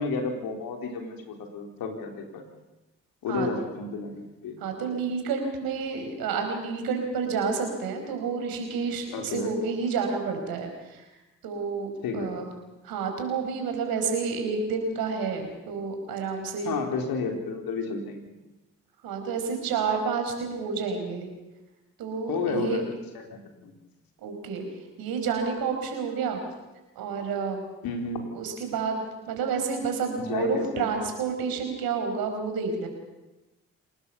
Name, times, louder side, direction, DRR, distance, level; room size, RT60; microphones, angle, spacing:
voice 1, 0.0-2.4 3.2-4.5 9.1-9.5 12.0-12.4 16.6-18.3 22.3-23.7 27.8-28.3 30.2-30.9, left 4 dB, 75° left, 3 dB, 4.0 m, -31 dB
voice 2, 4.6-11.1 11.4-12.5 12.8-16.8 19.0-21.3 22.0-22.8 24.2-24.6 25.0-26.4 27.0-27.6 28.3-32.9, right 5 dB, 80° right, 4 dB, 5.3 m, -29 dB
27.5 x 19.0 x 7.1 m, 1.0 s
hypercardioid pair, 40°, 35 cm